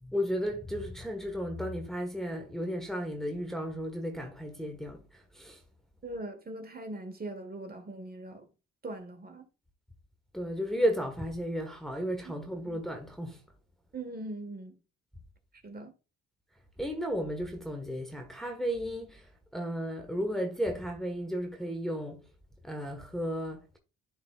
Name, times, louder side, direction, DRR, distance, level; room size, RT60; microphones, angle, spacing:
voice 1, 0.0-5.6 10.3-13.5 16.8-22.3 22.6-23.8, equal, ahead, 1.4 m, -34 dB
voice 2, 6.0-8.4 8.8-9.5 12.2-12.3 12.6-12.8 13.9-14.7 15.6-15.9, right 2 dB, 30° right, 1.6 m, -41 dB
11.5 x 3.9 x 2.4 m
cardioid pair, 90°, 30 cm